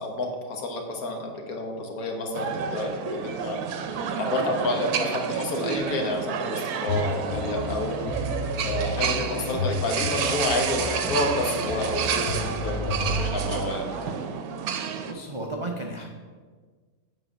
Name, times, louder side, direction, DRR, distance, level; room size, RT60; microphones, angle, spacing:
voice 1, 0.0-8.0 8.6-13.8, left 2 dB, 75° left, 2 dB, 1.5 m, -30 dB
sound 1, 2.3-15.1, right 7 dB, 80° right, 1.1 m, -30 dB
sound 2, 6.9-14.1, left 1 dB, 50° left, 1.9 m, -31 dB
voice 2, 14.7-16.1, right 2 dB, 45° right, 0 dB, 0.3 m, -34 dB
8.2 x 3.8 x 6.3 m, 1.5 s
omnidirectional pair, 1.6 m